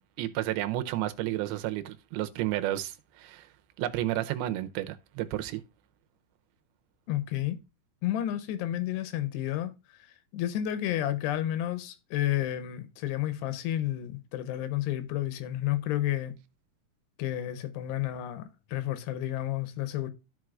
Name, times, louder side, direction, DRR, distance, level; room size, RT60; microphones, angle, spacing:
voice 1, 0.2-3.5 3.8-5.6, right 14 dB, 75° right, 2.4 m, -31 dB
voice 2, 7.1-7.6 8.0-9.7 10.3-16.4 17.2-20.1, left 13 dB, 85° left, 3.0 m, -31 dB
13.5 x 4.6 x 2.4 m
omnidirectional pair, 4.8 m